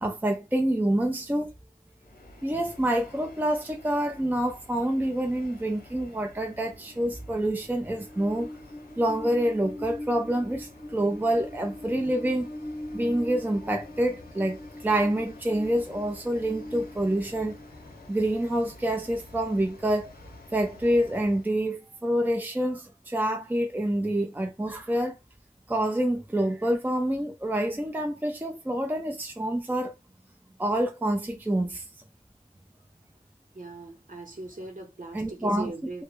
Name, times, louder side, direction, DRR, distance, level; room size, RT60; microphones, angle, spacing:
voice 1, 0.0-1.5 2.4-8.5 9.0-12.5 12.9-17.5 18.1-20.1 20.5-25.2 25.7-29.9 30.6-31.8 35.1-35.7, right 1 dB, 10° right, 0.5 m, -27 dB
Train, 2.0-21.5, left 1 dB, 85° left, 0.7 m, -43 dB
voice 2, 33.5-36.0, right 2 dB, 60° right, 1.0 m, -39 dB
2.3 x 2.1 x 3.1 m
wide cardioid pair, 40°, 15 cm